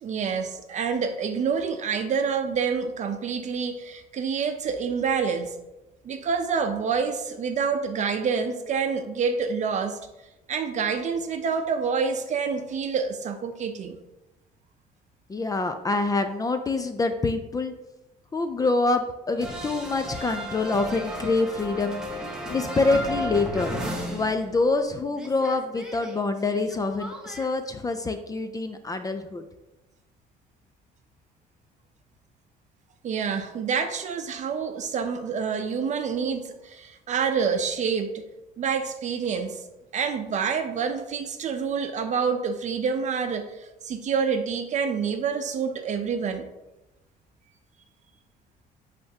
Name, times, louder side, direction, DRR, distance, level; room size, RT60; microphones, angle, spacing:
voice 1, 0.0-5.6 6.0-10.0 10.5-14.0 33.0-38.2 38.6-39.6 39.9-46.4, right 6 dB, 45° right, 7 dB, 0.7 m, -27 dB
voice 2, 15.3-17.7 18.3-22.0 22.5-23.7 24.1-29.4, left 3 dB, 20° left, 8 dB, 0.4 m, -26 dB
sound 1, 19.4-24.9 25.1-27.5, equal, 5° right, 1.0 m, -34 dB
10.0 x 3.4 x 2.8 m, 0.99 s
cardioid pair, 110°, 17 cm